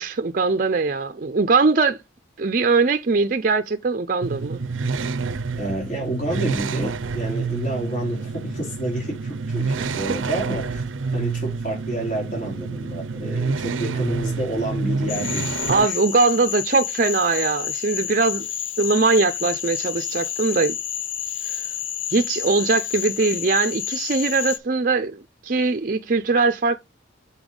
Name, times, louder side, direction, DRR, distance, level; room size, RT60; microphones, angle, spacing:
voice 1, 0.0-2.0 2.4-4.6 9.8-9.9 15.7-18.5 18.8-20.8 21.6-21.7 22.1-26.8, right 4 dB, 45° right, 0.5 m, -21 dB
sound 1, 4.2-15.9, right 4 dB, 90° right, 0.6 m, -28 dB
voice 2, 5.6-10.9 11.1-15.6 15.8-16.0, right 1 dB, 45° left, 3.2 m, -29 dB
Cricket / Frog, 15.1-24.6, left 10 dB, 75° left, 0.6 m, -29 dB
7.0 x 5.6 x 3.8 m
head